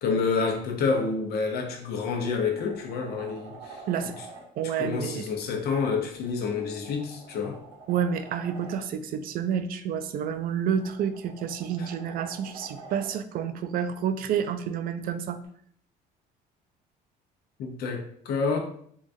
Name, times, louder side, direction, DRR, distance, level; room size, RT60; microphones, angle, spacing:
voice 1, 0.0-3.8 4.6-7.6 11.8-11.9 17.6-18.6, left 5 dB, 70° left, 3 dB, 0.7 m, -28 dB
sound 1, 2.2-4.5 6.1-8.9 10.3-13.2 15.4-15.5, right 3 dB, 90° right, 1.0 m, -47 dB
voice 2, 4.6-5.3 7.9-15.4, right 8 dB, 60° right, 10 dB, 0.4 m, -29 dB
3.7 x 2.3 x 2.6 m, 0.62 s
cardioid pair, 110°, 17 cm